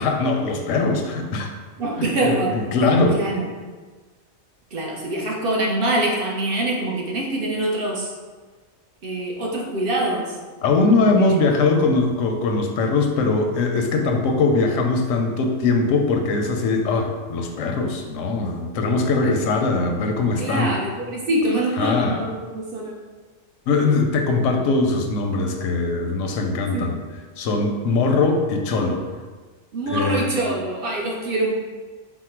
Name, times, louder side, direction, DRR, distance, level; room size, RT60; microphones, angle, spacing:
voice 1, 0.0-1.5 2.0-3.2 10.6-20.7 21.8-22.2 23.7-27.0 27.4-29.0 29.9-30.3, left 3 dB, 90° left, 4 dB, 0.9 m, -21 dB
voice 2, 1.8-2.6 3.1-3.5 4.7-8.1 9.0-10.4 20.4-22.9 26.7-26.9 29.7-31.5, right 1 dB, 55° right, -2 dB, 0.8 m, -24 dB
4.4 x 2.1 x 4.4 m, 1.4 s
omnidirectional pair, 1.3 m